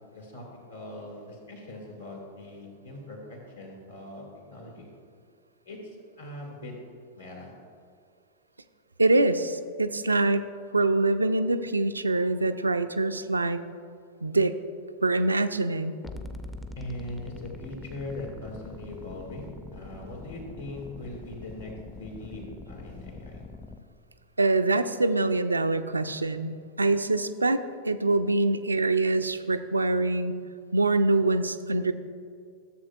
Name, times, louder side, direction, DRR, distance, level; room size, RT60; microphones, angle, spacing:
voice 1, 0.1-4.2 4.5-4.9 5.7-6.7 7.1-7.5 16.8-23.4, left 1 dB, 75° left, -1 dB, 2.1 m, -41 dB
voice 2, 9.0-10.5 10.7-13.6 14.2-14.5 15.0-16.0 24.4-30.3 30.7-31.9, right 2 dB, 80° right, 10 dB, 0.4 m, -24 dB
sound 1, 16.0-23.8, left 2 dB, 10° left, 0.5 m, -43 dB
14.0 x 7.5 x 2.4 m, 2.3 s
figure-of-eight pair, 90°, 0 cm